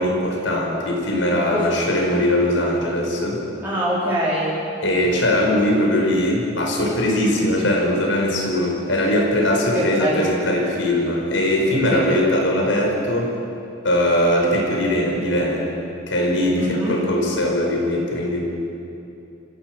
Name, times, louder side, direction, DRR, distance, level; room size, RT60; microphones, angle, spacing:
voice 1, 0.0-3.4 4.8-13.3 13.8-15.7 16.1-18.5, left 1 dB, 80° left, 0 dB, 5.4 m, -20 dB
voice 2, 3.6-4.6 9.7-10.2 11.9-12.0 16.6-17.0, equal, 10° right, -10 dB, 4.4 m, -23 dB
28.0 x 16.5 x 7.9 m, 2.8 s
head